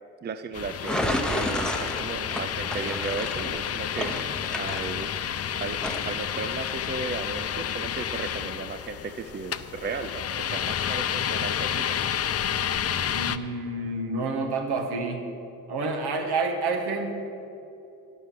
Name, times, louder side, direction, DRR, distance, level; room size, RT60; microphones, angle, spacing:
voice 1, 0.2-4.1 4.5-5.1 5.6-12.0, right 4 dB, 25° right, 9 dB, 0.5 m, -35 dB
sound 1, 0.5-13.4, left 9 dB, 35° left, 0.5 m, -30 dB
sound 2, 0.8-5.4 5.8-6.1, left 1 dB, ahead, 1.1 m, -31 dB
voice 2, 13.1-15.2 15.7-17.1, right 3 dB, 65° right, 3 dB, 1.7 m, -28 dB
9.6 x 6.3 x 7.5 m, 2.7 s
hypercardioid pair, 45°, 42 cm